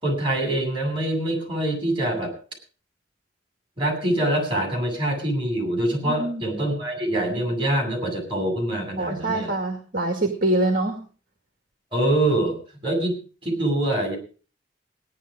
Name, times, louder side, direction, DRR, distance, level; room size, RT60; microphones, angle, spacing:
voice 1, 0.0-2.3 3.8-9.5 11.9-12.6 12.8-14.2, right 1 dB, 30° right, 2 dB, 7.8 m, -24 dB
voice 2, 6.0-6.4 9.0-11.0, right 1 dB, 50° right, 4 dB, 2.2 m, -24 dB
18.0 x 11.0 x 5.1 m, 0.39 s
head